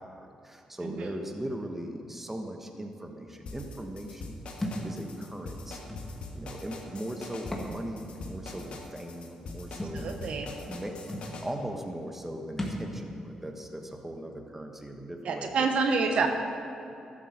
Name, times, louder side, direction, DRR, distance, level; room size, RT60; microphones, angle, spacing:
voice 1, 0.0-4.4 4.8-5.9 6.3-15.7 16.1-16.3, right 1 dB, 15° right, 4 dB, 1.3 m, -39 dB
sound 1, 3.5-11.4, left 3 dB, 60° left, 1.7 m, -42 dB
Thump thud, 4.6-4.9 5.9-6.0 7.4-7.7 8.2-8.3 9.8-10.0 10.8-10.9 11.1-11.3 12.6-12.9, left 1 dB, 15° left, 2.0 m, -34 dB
voice 2, 9.9-10.5 15.2-16.3, right 4 dB, 65° right, 5 dB, 1.0 m, -27 dB
12.5 x 7.5 x 6.6 m, 2.8 s
cardioid pair, 85°, 2 cm